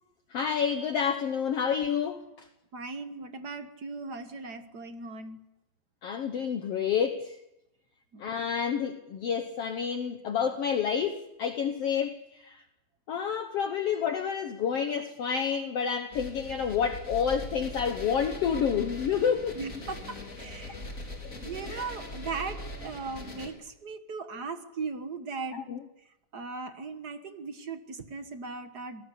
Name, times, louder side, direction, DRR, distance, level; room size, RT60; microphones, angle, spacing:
voice 1, 0.3-2.5 6.0-7.4 8.2-12.6 13.1-19.6 21.7-21.9 25.5-25.8, left 7 dB, 60° left, 1.8 m, -29 dB
voice 2, 2.7-5.4 8.1-8.2 19.5-20.8 21.4-25.6 26.3-29.0, right 4 dB, 45° right, 1.4 m, -38 dB
sound 1, 16.1-23.5, left 1 dB, 25° left, 4.0 m, -41 dB
27.5 x 18.5 x 8.5 m
omnidirectional pair, 3.7 m